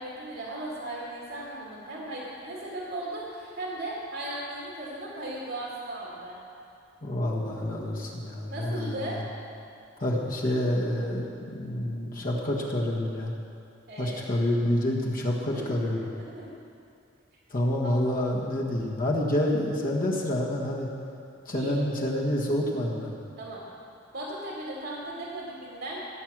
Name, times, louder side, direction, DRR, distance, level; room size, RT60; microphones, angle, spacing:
voice 1, 0.0-6.4 8.5-9.2 13.9-14.3 15.5-15.7 16.0-16.5 17.8-17.9 21.5-21.8 23.4-23.6 24.1-26.0, right 1 dB, 70° right, -5 dB, 2.3 m, -37 dB
voice 2, 7.0-9.2 10.0-11.2 11.5-13.3 14.0-16.1 17.5-20.9 21.4-23.2, left 1 dB, 45° left, -2 dB, 1.6 m, -28 dB
17.0 x 7.8 x 6.1 m, 2.5 s
head